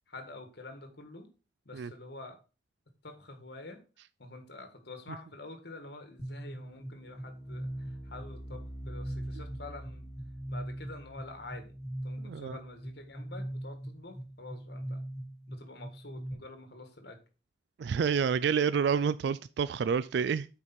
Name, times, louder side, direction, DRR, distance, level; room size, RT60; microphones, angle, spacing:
voice 1, 0.1-1.3 1.6-2.4 3.0-3.8 4.2-10.1 10.5-11.8 12.0-15.0 15.5-17.2, left 2 dB, 55° left, 1.6 m, -47 dB
sound 1, 6.2-16.3, right 1 dB, 35° left, 1.9 m, -41 dB
voice 2, 12.2-12.6 17.8-20.5, right 6 dB, 60° right, 0.3 m, -28 dB
8.5 x 4.8 x 4.2 m
head